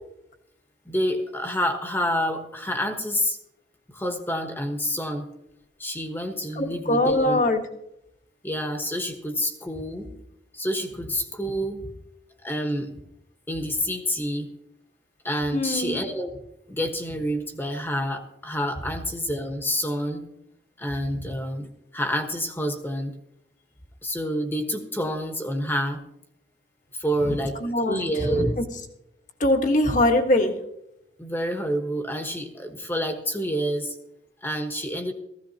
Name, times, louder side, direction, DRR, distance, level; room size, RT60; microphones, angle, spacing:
voice 1, 0.8-3.4 3.9-5.3 5.8-7.5 8.4-10.1 10.5-11.8 12.4-12.9 13.5-14.5 15.2-16.3 16.7-20.2 20.8-23.1 24.0-26.0 27.0-27.6 27.9-28.6 31.2-33.9 34.4-35.1, equal, 10° left, 5 dB, 1.3 m, -28 dB
voice 2, 6.6-7.6 15.5-16.0 27.2-28.5 29.4-30.5, left 1 dB, 45° left, 5 dB, 1.4 m, -22 dB
16.0 x 15.0 x 2.9 m, 0.82 s
head